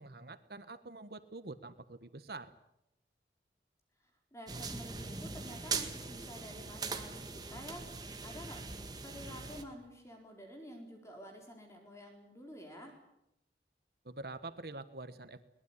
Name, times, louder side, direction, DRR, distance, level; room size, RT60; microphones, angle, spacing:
voice 1, 0.0-2.5 14.0-15.4, right 2 dB, 60° right, 11 dB, 1.3 m, -46 dB
voice 2, 4.0-7.9 8.2-8.6 9.0-13.0, equal, 15° left, 2 dB, 4.1 m, -50 dB
sound 1, 4.5-9.6, right 4 dB, 25° right, 1.8 m, -41 dB
22.5 x 20.0 x 10.0 m, 0.83 s
head